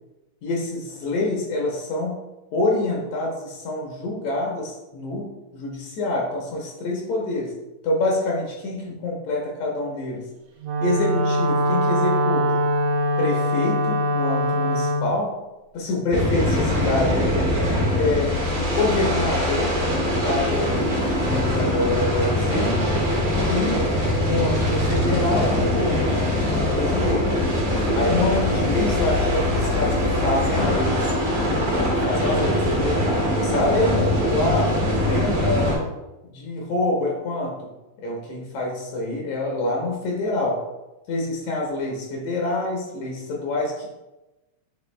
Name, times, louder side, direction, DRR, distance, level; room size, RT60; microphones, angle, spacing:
voice 1, 0.4-2.2 2.5-7.6 7.8-10.3 10.8-12.6 13.2-15.3 15.7-17.4 17.9-22.9 23.4-26.2 26.6-27.4 27.9-33.1 33.4-34.7 35.1-35.8 36.2-37.7 38.0-40.6 41.1-43.9, left 2 dB, 75° left, -1 dB, 1.9 m, -26 dB
Wind instrument woodwind instrument, 10.6-15.1, equal, 80° right, 1.8 m, -22 dB
sound 1, 16.1-35.8, left 1 dB, 65° right, 0.9 m, -22 dB
5.1 x 2.9 x 3.2 m, 1.0 s
omnidirectional pair, 3.4 m